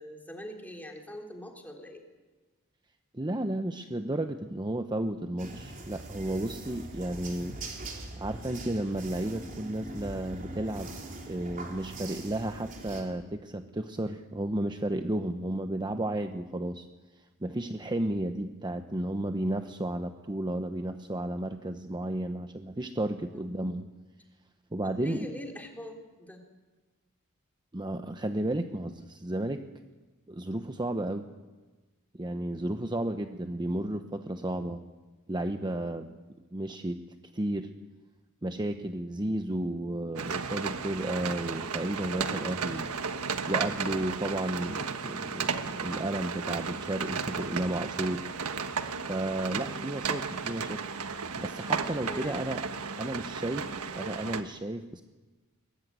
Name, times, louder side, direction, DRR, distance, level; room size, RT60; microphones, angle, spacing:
voice 1, 0.0-2.0 23.3-23.5 24.8-26.4 49.5-49.9 52.0-52.5, left 1 dB, 10° left, 2 dB, 3.5 m, -43 dB
voice 2, 3.1-7.6 8.2-10.9 11.3-16.9 17.4-23.9 24.7-25.3 27.7-29.6 30.3-31.3 32.1-34.8 35.3-36.1 36.5-37.0 37.3-37.7 38.4-42.9 43.5-48.2 49.1-50.8 51.4-52.7 53.0-53.7 53.9-55.0, right 1 dB, 20° right, 7 dB, 0.9 m, -33 dB
sound 1, 5.4-13.0, right 2 dB, 40° right, 3.9 m, -42 dB
sound 2, 40.2-54.4, right 5 dB, 85° right, 1.4 m, -34 dB
22.5 x 20.0 x 9.4 m, 1.2 s
head